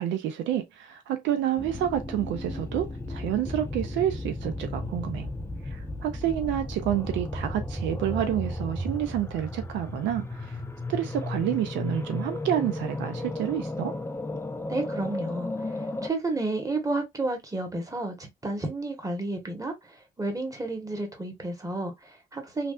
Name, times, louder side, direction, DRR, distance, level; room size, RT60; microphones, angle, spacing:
voice 1, 0.0-5.3 5.6-10.6 10.9-14.0, right 11 dB, 85° right, 0.5 m, -29 dB
sound 1, 1.6-16.1, left 1 dB, 15° left, 0.5 m, -34 dB
voice 2, 14.7-22.7, right 2 dB, 20° right, 1.4 m, -31 dB
3.3 x 2.4 x 2.4 m
supercardioid pair, 60°, 19 cm